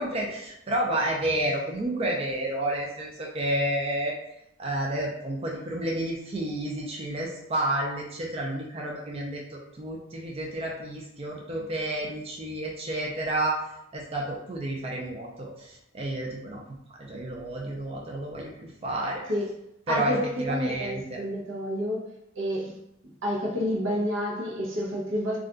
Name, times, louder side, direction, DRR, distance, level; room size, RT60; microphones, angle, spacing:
voice 1, 0.0-4.1 4.6-13.6 13.9-16.6 17.0-19.3 19.9-20.1 20.4-21.2, right 1 dB, 30° right, -2 dB, 0.4 m, -30 dB
voice 2, 19.9-22.1 22.4-22.8 23.2-25.4, equal, 80° right, -2 dB, 0.7 m, -29 dB
2.4 x 2.2 x 3.7 m, 0.81 s
head